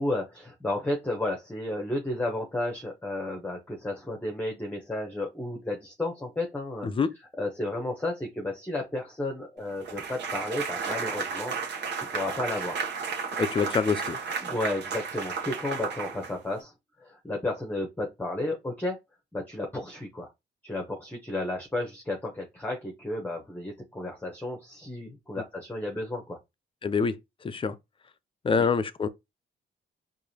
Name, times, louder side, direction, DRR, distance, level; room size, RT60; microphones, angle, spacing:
voice 1, 0.0-6.9 7.4-11.5 12.0-12.8 14.4-16.7 17.0-19.0 19.3-20.3 20.6-26.4, left 1 dB, 10° left, 0.9 m, -32 dB
sound 1, 9.8-16.6, right 5 dB, 60° right, 1.1 m, -33 dB
voice 2, 13.4-14.2 26.8-27.2 27.4-27.8 28.4-29.1, left 5 dB, 25° left, 0.5 m, -25 dB
4.7 x 2.6 x 2.8 m
cardioid pair, 90°, 20 cm